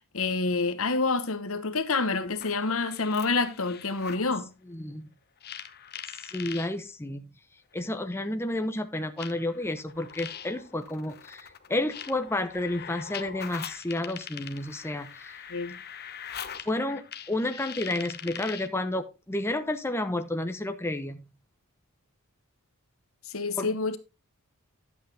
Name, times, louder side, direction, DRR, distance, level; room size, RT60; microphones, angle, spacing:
voice 1, 0.0-4.5 15.5-15.8 23.3-24.0, left 3 dB, 65° left, 1.2 m, -28 dB
sound 1, 2.3-4.3 5.4-6.7 7.8-7.9 9.2-18.8, left 8 dB, 45° left, 1.0 m, -42 dB
voice 2, 4.7-5.1 6.2-7.2 7.7-15.4 16.7-21.2 23.6-23.7, left 1 dB, 10° left, 0.8 m, -31 dB
11.5 x 8.3 x 3.4 m
head